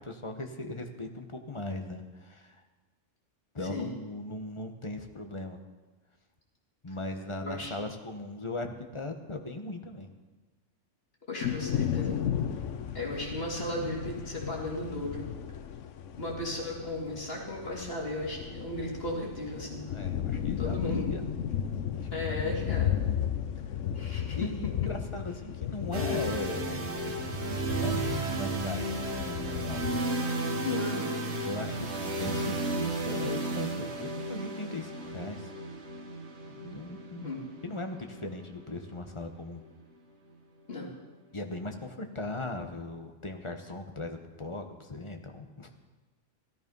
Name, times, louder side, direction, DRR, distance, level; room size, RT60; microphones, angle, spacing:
voice 1, 0.0-2.6 3.5-5.6 6.8-10.1 19.9-21.3 21.8-22.8 24.3-29.8 31.4-35.5 36.5-37.3 37.6-39.6 41.3-45.7, left 2 dB, 25° left, 4 dB, 1.2 m, -39 dB
voice 2, 7.4-7.7 11.3-12.2 12.9-15.3 16.2-19.9 20.6-21.0 22.1-23.0 23.9-24.5 30.6-31.2 37.2-37.4 40.7-40.9, left 1 dB, 55° left, -2 dB, 3.0 m, -35 dB
sound 1, 11.4-30.0, left 9 dB, 85° left, 1.1 m, -35 dB
Smooth Pads, 25.9-39.8, right 2 dB, 65° right, 1.6 m, -34 dB
15.5 x 13.5 x 5.4 m, 1.3 s
omnidirectional pair, 1.2 m